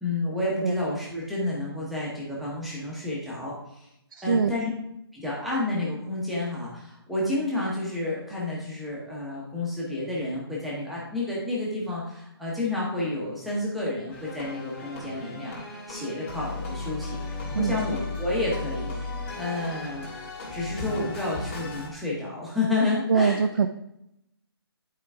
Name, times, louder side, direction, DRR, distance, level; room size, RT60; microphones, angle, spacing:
voice 1, 0.0-3.9 4.2-4.7 5.1-20.1 20.5-23.4, left 2 dB, ahead, -7 dB, 1.0 m, -30 dB
voice 2, 4.2-4.5 17.5-17.8 23.1-23.7, right 5 dB, 55° right, 7 dB, 0.5 m, -23 dB
sound 1, 14.1-21.9, left 3 dB, 30° left, 2.0 m, -35 dB
10.5 x 4.6 x 3.5 m, 0.82 s
hypercardioid pair, 170°, 14 cm